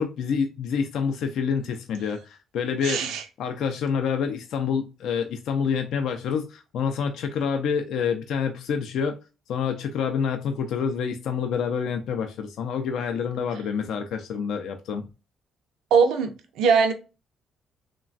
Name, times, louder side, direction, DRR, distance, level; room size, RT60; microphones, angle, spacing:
voice 1, 0.0-9.2 9.5-15.1, left 6 dB, 80° left, 0.4 m, -27 dB
voice 2, 2.8-3.2 15.9-16.3 16.6-16.9, right 5 dB, 85° right, 0.4 m, -20 dB
3.1 x 2.2 x 2.4 m
cardioid pair, 90°, 0 cm